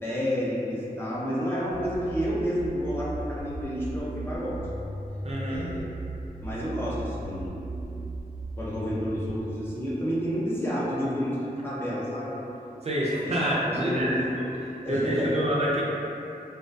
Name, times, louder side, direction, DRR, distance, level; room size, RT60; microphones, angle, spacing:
voice 1, 0.0-4.6 5.5-5.9 6.4-8.0 8.6-12.4 13.2-14.5 14.8-15.4, equal, 15° left, -8 dB, 0.5 m, -30 dB
sound 1, 1.7-9.4, right 2 dB, 75° left, 0.7 m, -37 dB
voice 2, 5.2-5.7 12.8-14.1 14.9-15.8, right 1 dB, 40° right, -6 dB, 0.4 m, -27 dB
2.2 x 2.2 x 2.5 m, 2.8 s
wide cardioid pair, 85°, 16 cm